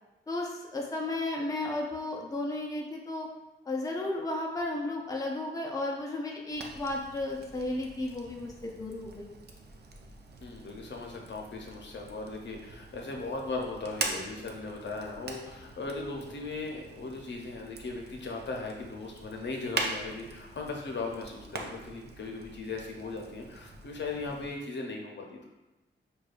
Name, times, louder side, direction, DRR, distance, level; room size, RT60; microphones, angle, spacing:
voice 1, 0.3-3.3 3.7-9.3, left 2 dB, 20° left, 0 dB, 0.5 m, -34 dB
Fire, 6.5-24.6, right 3 dB, 55° right, 0.5 m, -43 dB
voice 2, 10.4-25.5, left 3 dB, 65° left, 0 dB, 0.7 m, -38 dB
6.4 x 2.3 x 2.5 m, 1.1 s
wide cardioid pair, 100°, 20 cm